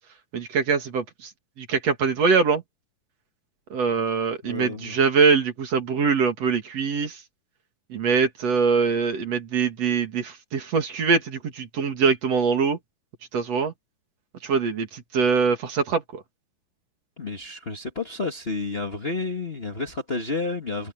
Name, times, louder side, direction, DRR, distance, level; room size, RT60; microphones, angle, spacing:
voice 1, 0.3-1.3 1.6-2.6 3.7-7.2 7.9-12.8 13.3-13.7 14.4-16.2, right 5 dB, 50° right, 3.1 m, -23 dB
voice 2, 4.4-5.0 17.2-20.9, left 3 dB, 55° left, 0.6 m, -30 dB
omnidirectional pair, 4.2 m